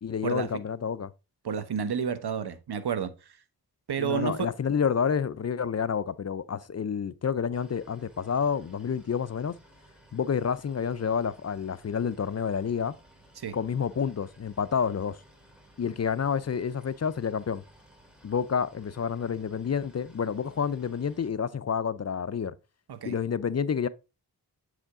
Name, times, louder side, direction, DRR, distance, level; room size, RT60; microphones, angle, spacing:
voice 1, 0.0-1.1 4.0-9.6 10.1-12.9 13.5-15.2 15.8-17.6 18.2-22.5 23.0-23.9, left 7 dB, 40° left, 0.5 m, -29 dB
voice 2, 1.4-3.4 3.9-4.5 13.4-13.5 22.9-23.2, right 7 dB, 70° right, 1.0 m, -31 dB
Boat Water vehicle, 7.5-21.3, right 1 dB, ahead, 2.4 m, -57 dB
7.7 x 5.0 x 3.6 m
cardioid pair, 60°, 40 cm